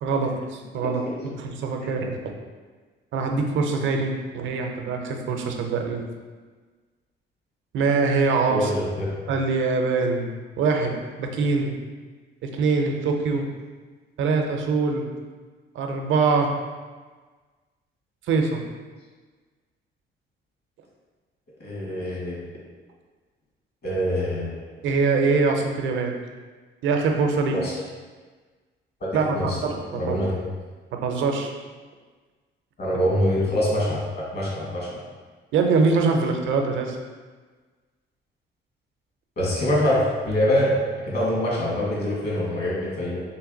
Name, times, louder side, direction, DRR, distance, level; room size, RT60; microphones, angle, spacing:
voice 1, 0.0-2.2 3.1-6.0 7.7-8.7 9.3-10.3 10.6-11.7 12.4-13.4 14.2-15.1 15.8-16.5 18.3-18.6 24.8-26.1 26.8-27.6 29.1-30.2 31.0-31.5 33.4-33.5 35.5-37.0, right 4 dB, 75° right, 3 dB, 0.6 m, -23 dB
voice 2, 8.5-9.1 21.6-22.4 23.8-24.5 27.5-27.7 29.0-29.1 29.3-29.6 29.9-30.3 32.8-35.0 39.4-40.7 41.1-43.2, left 1 dB, 55° left, -5 dB, 1.5 m, -24 dB
3.2 x 2.9 x 3.8 m, 1.4 s
cardioid pair, 90°, 20 cm